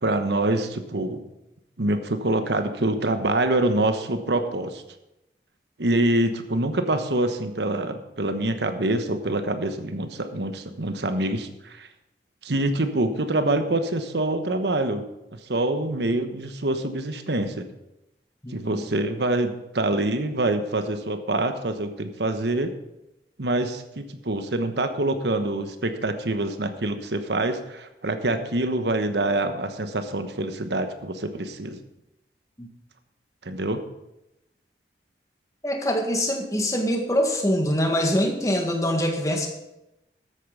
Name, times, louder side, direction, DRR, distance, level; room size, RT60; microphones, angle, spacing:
voice 1, 0.0-1.2 1.8-4.8 5.8-11.9 12.4-15.0 15.3-17.7 18.5-22.7 23.4-31.8 33.4-33.8, right 2 dB, 80° right, 8 dB, 1.2 m, -25 dB
voice 2, 18.4-18.9 32.6-32.7 35.6-39.5, equal, 20° left, 3 dB, 1.7 m, -24 dB
13.5 x 8.5 x 5.6 m, 0.91 s
head